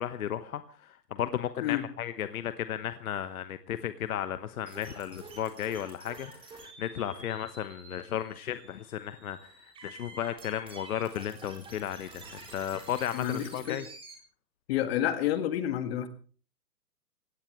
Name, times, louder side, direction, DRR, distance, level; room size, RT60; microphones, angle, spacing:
voice 1, 0.0-13.8, left 10 dB, 55° left, 1.2 m, -34 dB
sound 1, 4.7-14.1, right 3 dB, 10° right, 3.9 m, -49 dB
voice 2, 13.1-13.8 14.7-16.1, left 11 dB, 35° left, 1.9 m, -29 dB
22.5 x 17.5 x 3.2 m
hypercardioid pair, 145°, 49 cm